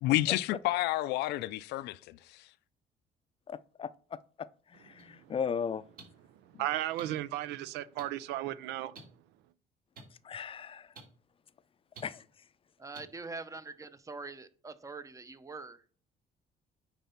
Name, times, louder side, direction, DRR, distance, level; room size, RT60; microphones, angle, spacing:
voice 1, 0.0-2.2, left 16 dB, 85° left, 0.5 m, -30 dB
voice 2, 3.5-3.9 4.4-5.8 10.2-10.9 12.0-12.2, left 7 dB, 35° left, 0.5 m, -37 dB
voice 3, 4.9-5.3 6.3-9.0, right 14 dB, 85° right, 0.6 m, -36 dB
sound 1, 5.0-5.1 6.0-6.1 7.0-7.1 8.0-8.1 9.0-9.1 10.0-10.1 11.0-11.1 11.9-12.0 12.9-13.0, right 4 dB, 60° right, 3.0 m, -47 dB
voice 4, 12.8-15.8, right 3 dB, 20° right, 0.7 m, -44 dB
9.2 x 4.1 x 5.7 m
cardioid pair, 110°, 17 cm